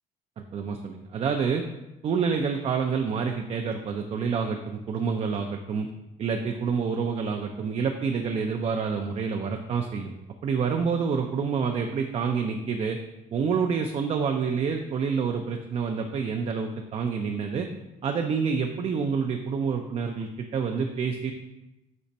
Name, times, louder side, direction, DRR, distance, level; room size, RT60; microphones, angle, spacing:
voice 1, 0.5-1.6 2.0-5.9 6.2-10.1 10.4-13.0 13.3-17.7 18.0-21.3, right 6 dB, 40° right, 3 dB, 0.4 m, -28 dB
5.2 x 2.5 x 4.0 m, 0.96 s
cardioid pair, 110°, 17 cm